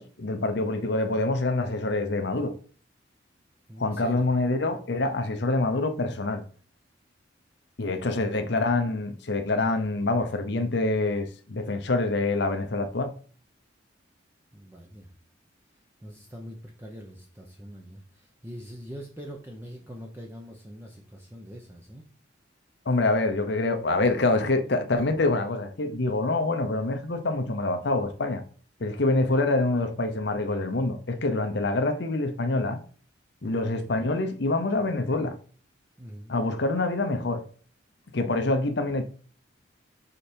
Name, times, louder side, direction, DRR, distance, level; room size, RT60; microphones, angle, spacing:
voice 1, 0.0-2.6 3.8-6.4 7.8-13.1 22.9-28.4 28.8-32.8 33.4-35.3 36.3-37.4 38.1-39.0, left 2 dB, 60° left, 0.7 m, -26 dB
voice 2, 3.7-4.2 8.0-8.3 14.5-15.1 16.0-22.1 24.9-25.1 33.4-33.8 36.0-36.4, equal, 15° right, 0.7 m, -43 dB
5.1 x 4.8 x 4.4 m
head